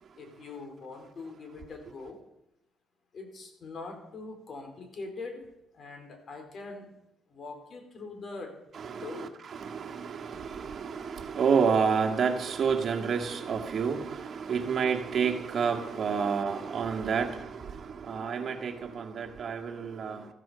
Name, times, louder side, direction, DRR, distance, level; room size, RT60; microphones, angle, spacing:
voice 1, 0.2-2.2 3.1-5.4 5.7-6.9 7.3-8.5 9.0-9.3 14.5-14.7 16.2-16.3, left 3 dB, 55° left, 4 dB, 4.5 m, -42 dB
voice 2, 8.7-20.3, right 6 dB, 50° right, 2 dB, 2.0 m, -29 dB
14.5 x 14.5 x 5.2 m, 0.83 s
cardioid pair, 90°, 0 cm